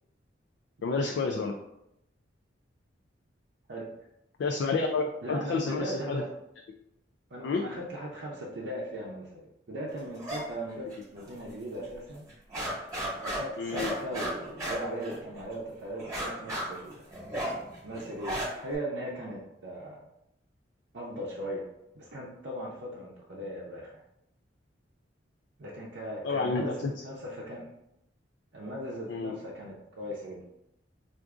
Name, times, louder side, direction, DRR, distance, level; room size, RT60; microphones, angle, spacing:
voice 1, 0.8-1.5 4.4-6.2 7.4-7.6 13.6-13.9 26.2-26.9 29.1-29.3, left 4 dB, 75° left, 2 dB, 0.3 m, -29 dB
voice 2, 5.2-6.3 7.3-12.2 13.2-17.1 17.8-20.0 20.9-21.6 21.9-23.9 25.6-27.7 28.5-30.4, right 1 dB, 65° right, -5 dB, 0.6 m, -38 dB
sound 1, 10.2-10.4 10.7-11.5 11.8-11.9 12.3-15.5 16.0-18.7, right 1 dB, 15° right, 1.0 m, -35 dB
4.6 x 2.5 x 2.4 m, 0.84 s
head